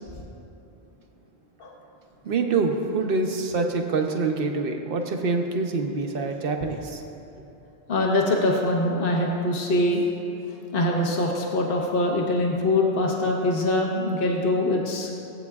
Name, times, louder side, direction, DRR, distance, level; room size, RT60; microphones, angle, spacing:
voice 1, 2.2-7.0, right 4 dB, 60° right, 4 dB, 1.0 m, -25 dB
voice 2, 7.9-10.0 10.7-15.1, left 1 dB, 55° left, 0 dB, 1.1 m, -23 dB
17.0 x 8.4 x 2.4 m, 3.0 s
omnidirectional pair, 1.1 m